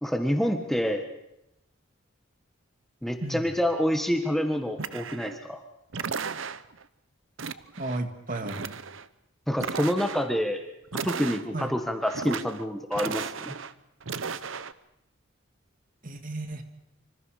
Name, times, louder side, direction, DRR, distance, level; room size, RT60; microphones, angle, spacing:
voice 1, 0.0-1.0 3.0-5.6 9.5-10.6 11.0-13.5, equal, ahead, 5 dB, 1.5 m, -27 dB
sound 1, 4.8-5.4 5.9-6.8 7.4-8.0 8.3-9.1 9.5-10.3 10.9-11.7 12.1-12.6 12.9-13.7 14.0-14.7, right 5 dB, 70° right, 0.9 m, -35 dB
voice 2, 7.8-8.7 11.5-11.7 16.0-16.6, right 2 dB, 40° right, 7 dB, 2.1 m, -33 dB
26.5 x 25.5 x 5.0 m, 0.81 s
head